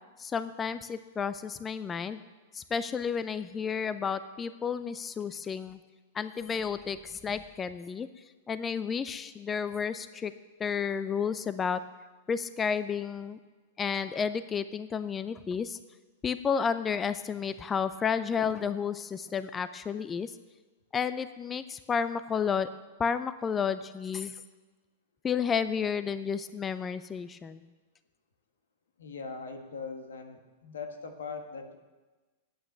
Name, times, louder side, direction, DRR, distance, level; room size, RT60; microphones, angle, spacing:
voice 1, 0.2-2.2 2.5-5.8 6.1-8.1 8.5-10.3 10.6-11.8 12.3-13.4 13.8-15.8 16.2-20.3 20.9-22.7 23.0-24.4 25.2-27.7, left 6 dB, 20° left, 13 dB, 0.4 m, -31 dB
voice 2, 29.0-31.8, left 4 dB, 90° left, 6 dB, 1.5 m, -40 dB
8.8 x 8.7 x 6.8 m, 1.2 s
hypercardioid pair, 130°, 0 cm